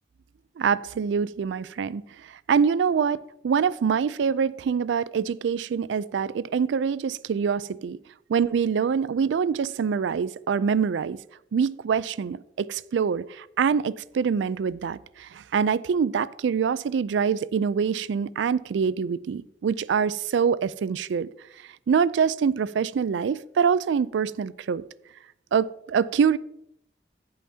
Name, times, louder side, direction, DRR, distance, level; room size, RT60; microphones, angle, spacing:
voice 1, 0.6-8.0 8.3-11.2 11.5-21.3 21.9-24.8 25.5-26.4, right 6 dB, 85° right, 18 dB, 0.3 m, -25 dB
17.0 x 5.7 x 2.8 m, 0.77 s
head